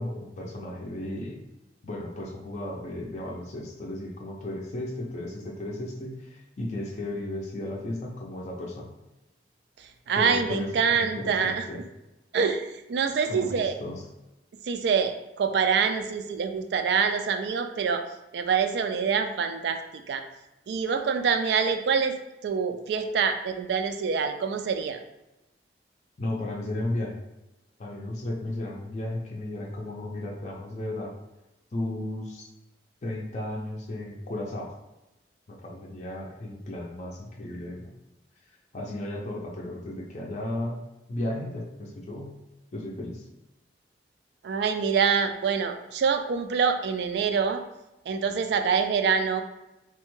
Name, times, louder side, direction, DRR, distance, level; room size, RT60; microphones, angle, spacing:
voice 1, 0.0-1.4 1.8-8.9 10.1-11.8 13.2-14.0 26.2-27.2 27.8-31.1 31.7-32.5 33.0-34.7 35.5-38.0 38.7-40.8 41.1-42.3 42.7-43.3, left 1 dB, 40° left, -2 dB, 0.4 m, -34 dB
voice 2, 10.1-11.7 12.3-13.7 14.7-18.0 18.3-19.8 20.1-20.2 20.7-22.2 22.4-25.0 44.4-47.6 48.1-49.4, right 6 dB, 70° right, 8 dB, 0.3 m, -25 dB
3.3 x 2.1 x 3.1 m, 0.96 s
head